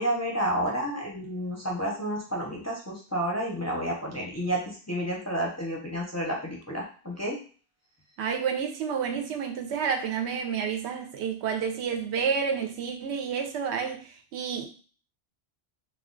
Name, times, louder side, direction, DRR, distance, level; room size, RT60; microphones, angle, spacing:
voice 1, 0.0-7.4, right 1 dB, 20° left, 0.5 m, -30 dB
voice 2, 8.2-14.7, right 6 dB, 90° right, 0.8 m, -30 dB
2.3 x 2.2 x 3.7 m
omnidirectional pair, 1.1 m